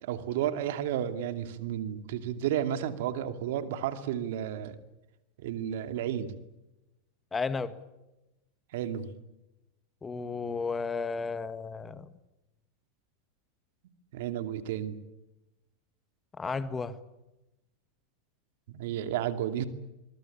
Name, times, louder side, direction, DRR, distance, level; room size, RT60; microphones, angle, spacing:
voice 1, 0.0-4.8 5.4-6.3 8.7-9.1 14.1-15.0 18.7-19.6, right 10 dB, 70° right, 2.5 m, -32 dB
voice 2, 7.3-7.8 10.0-12.1 16.3-17.0, left 4 dB, 20° left, 1.7 m, -33 dB
24.5 x 22.5 x 8.6 m
hypercardioid pair, 110°, 0 cm